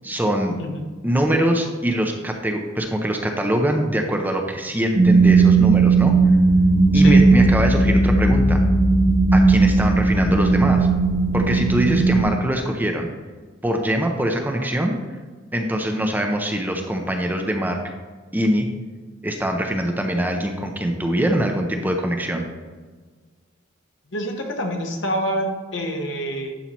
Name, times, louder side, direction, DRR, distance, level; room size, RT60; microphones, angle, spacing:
voice 1, 0.0-0.5 1.0-6.1 6.9-8.6 9.3-10.9 11.3-13.1 13.6-15.0 15.5-17.8 18.3-18.7 19.2-22.4, right 1 dB, 10° right, 3 dB, 0.6 m, -23 dB
sound 1, 4.9-12.2, right 3 dB, 50° right, 1.4 m, -16 dB
voice 2, 6.9-7.3 24.1-26.5, equal, 60° left, 3 dB, 1.1 m, -26 dB
11.0 x 5.6 x 3.0 m, 1.4 s
head